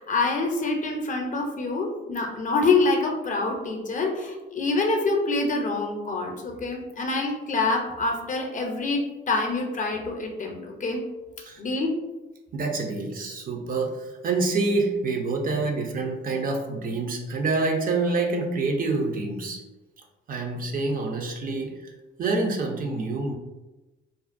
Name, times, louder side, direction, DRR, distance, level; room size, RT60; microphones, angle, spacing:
voice 1, 0.0-11.0 11.6-11.9, left 3 dB, 40° left, 2 dB, 0.5 m, -26 dB
voice 2, 12.5-19.6 20.3-21.9 22.2-23.3, right 3 dB, 45° right, 2 dB, 0.4 m, -27 dB
2.4 x 2.1 x 2.4 m, 1.1 s
cardioid pair, 90°, 20 cm